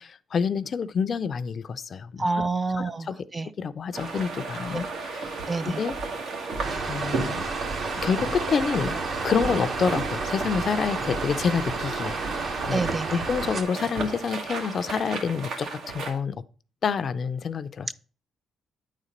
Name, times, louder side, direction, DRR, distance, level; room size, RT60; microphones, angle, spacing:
voice 1, 0.0-2.5 3.1-3.2 3.6-5.4 5.6-6.0 6.9-7.4 8.0-9.0 9.2-16.4 16.8-17.9, left 6 dB, 50° left, 0.4 m, -28 dB
voice 2, 2.2-3.5 4.7-4.8 5.5-5.8 12.7-13.2, right 3 dB, 25° right, 0.4 m, -28 dB
sound 1, 3.9-16.2, right 3 dB, 75° right, 1.6 m, -33 dB
sound 2, 6.6-13.6, right 4 dB, 50° right, 1.2 m, -33 dB
9.1 x 4.2 x 5.1 m
cardioid pair, 90°, 0 cm